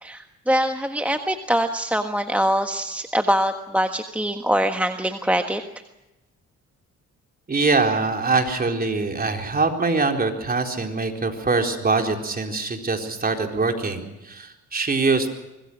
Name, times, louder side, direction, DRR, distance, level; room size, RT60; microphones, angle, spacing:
voice 1, 0.0-5.6, equal, 5° right, 6 dB, 1.4 m, -23 dB
voice 2, 7.5-15.3, right 3 dB, 30° right, 3 dB, 4.2 m, -23 dB
25.5 x 21.0 x 6.2 m, 1.0 s
cardioid pair, 90°, 30 cm